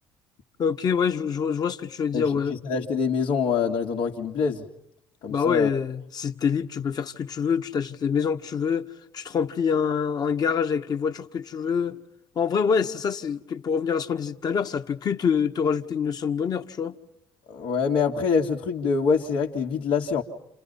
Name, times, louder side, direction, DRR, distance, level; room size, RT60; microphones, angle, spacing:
voice 1, 0.6-2.6 5.3-8.9 9.1-12.0 12.3-16.9, left 6 dB, 45° left, 1.8 m, -25 dB
voice 2, 2.7-4.7 5.2-5.7 17.5-20.2, left 5 dB, 75° left, 2.5 m, -25 dB
29.5 x 28.5 x 5.6 m
supercardioid pair, 85°, 9 cm